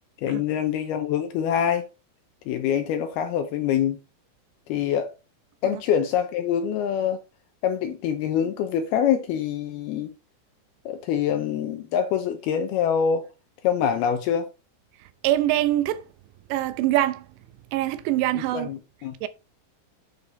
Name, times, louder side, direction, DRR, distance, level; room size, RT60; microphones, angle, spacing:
voice 1, 0.2-1.8 2.5-4.0 4.7-5.1 5.6-7.2 7.6-10.1 10.9-13.3 13.6-14.5 18.3-19.1, left 8 dB, 80° left, 2.4 m, -25 dB
voice 2, 15.2-16.0 16.5-17.2 17.7-18.7 19.2-19.3, right 14 dB, 80° right, 2.9 m, -23 dB
9.9 x 4.8 x 3.9 m
omnidirectional pair, 5.2 m